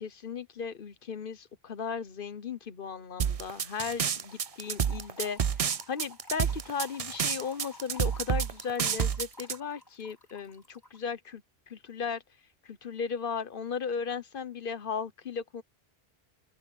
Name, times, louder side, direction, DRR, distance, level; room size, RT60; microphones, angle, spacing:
voice 1, 0.0-5.4 5.9-11.4 11.7-12.2 12.6-15.6, left 6 dB, 60° left, 1.1 m, -36 dB
sound 1, 3.2-9.5, right 7 dB, 45° right, 0.5 m, -29 dB
Trickle dribble / Fill (with liquid), 3.9-11.0, left 2 dB, 20° left, 4.8 m, -52 dB
open air
omnidirectional pair, 1.0 m